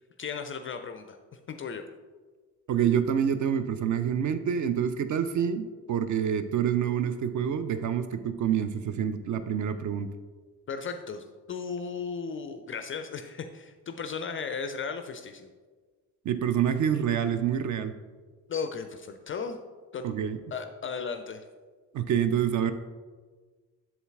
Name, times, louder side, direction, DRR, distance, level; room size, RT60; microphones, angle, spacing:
voice 1, 0.2-1.2 1.5-1.8 10.7-15.5 18.5-19.6 19.9-20.1 20.5-21.4, left 5 dB, 25° left, 8 dB, 0.4 m, -35 dB
voice 2, 2.7-10.1 16.2-17.9 20.0-20.4 21.9-22.7, right 8 dB, 40° right, 11 dB, 0.5 m, -27 dB
7.9 x 7.2 x 2.4 m, 1.4 s
figure-of-eight pair, 40°, 50 cm